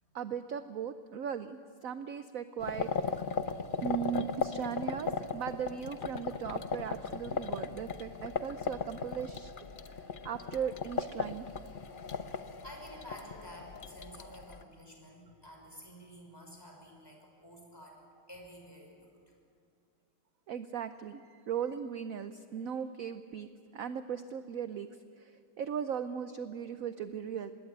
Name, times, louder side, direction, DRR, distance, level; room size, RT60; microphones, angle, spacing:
voice 1, 0.1-2.9 3.8-9.5 9.9-11.5 20.5-24.9 25.2-27.5, right 8 dB, 60° right, 10 dB, 0.9 m, -38 dB
sound 1, 2.6-14.6, left 5 dB, 55° left, 0.6 m, -37 dB
voice 2, 12.2-18.0 18.3-19.4, equal, 10° left, 1 dB, 5.8 m, -51 dB
26.0 x 20.5 x 8.8 m, 2.4 s
omnidirectional pair, 2.2 m